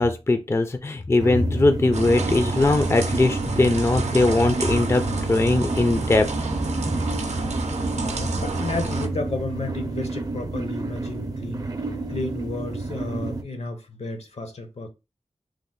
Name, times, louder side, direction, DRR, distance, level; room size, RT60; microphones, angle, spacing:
voice 1, 0.0-6.3, left 2 dB, 25° left, 0.4 m, -20 dB
sound 1, 1.2-13.4, right 2 dB, 35° right, 0.5 m, -29 dB
sound 2, 1.9-9.1, right 3 dB, 90° right, 0.5 m, -30 dB
voice 2, 7.9-11.7 12.1-14.9, left 2 dB, 70° left, 0.8 m, -32 dB
3.1 x 2.0 x 3.8 m
wide cardioid pair, 70°, 11 cm